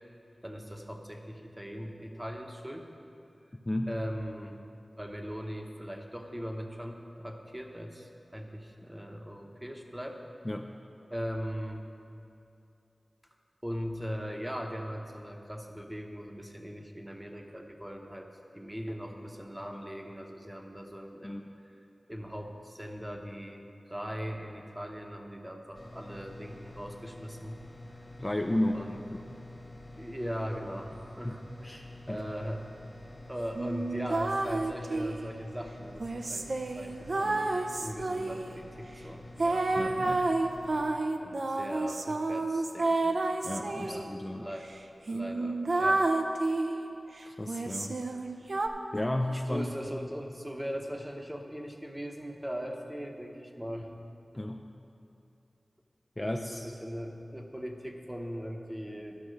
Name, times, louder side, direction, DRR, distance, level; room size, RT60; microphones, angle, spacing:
voice 1, 0.4-2.9 3.9-4.6 5.0-10.2 11.1-11.9 13.6-18.3 18.5-21.5 22.1-27.6 28.7-29.0 30.0-31.8 32.1-32.7 33.3-39.7 41.2-43.3 43.8-44.1 44.3-44.7 45.1-46.1 49.5-53.9 54.3-54.4 56.2-59.2, equal, 10° right, 2 dB, 0.9 m, -40 dB
voice 2, 3.7-4.0 10.4-10.7 21.2-21.6 28.2-28.8 29.1-29.4 31.2-31.3 31.6-32.2 39.8-40.3 43.4-44.5 47.2-48.0 48.9-49.7 54.4-54.6 56.2-56.7, left 1 dB, 20° left, 3 dB, 0.4 m, -33 dB
sound 1, 25.7-40.9, left 1 dB, 40° left, 1.4 m, -48 dB
sound 2, 33.5-35.3 36.0-38.5 39.4-44.1 44.6-44.7 45.1-46.8 47.5-48.7, right 2 dB, 60° right, 0.5 m, -30 dB
12.0 x 5.9 x 6.3 m, 2.6 s
wide cardioid pair, 85°, 0 cm